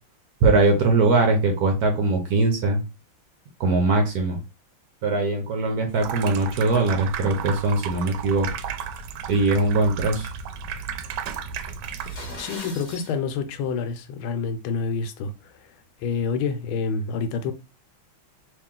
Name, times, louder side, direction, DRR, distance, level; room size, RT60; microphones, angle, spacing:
voice 1, 0.4-2.8 3.6-4.4 5.0-8.5 9.3-10.3, right 3 dB, 65° right, 1.0 m, -21 dB
Water tap faucet / Sink (filling or washing), 5.9-12.4, right 7 dB, 80° right, 1.3 m, -34 dB
sound 1, 11.9-13.1, left 1 dB, 30° left, 0.8 m, -39 dB
voice 2, 12.4-15.5 16.0-17.5, left 5 dB, 85° left, 1.5 m, -28 dB
3.0 x 3.0 x 3.6 m
omnidirectional pair, 2.2 m